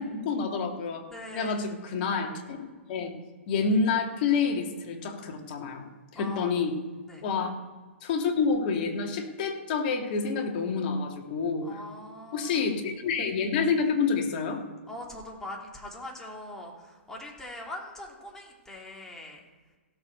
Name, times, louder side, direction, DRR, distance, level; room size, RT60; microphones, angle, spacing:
voice 1, 0.0-1.0 1.3-2.6 2.9-3.1 3.5-6.7 7.2-7.5 8.0-11.8 12.3-14.6, left 5 dB, 45° left, 2 dB, 2.6 m, -28 dB
voice 2, 1.1-1.6 6.1-6.6 7.1-7.2 11.6-12.7 14.9-19.4, left 1 dB, 5° left, -2 dB, 3.2 m, -42 dB
16.0 x 7.0 x 6.8 m, 1.3 s
figure-of-eight pair, 115°, 7 cm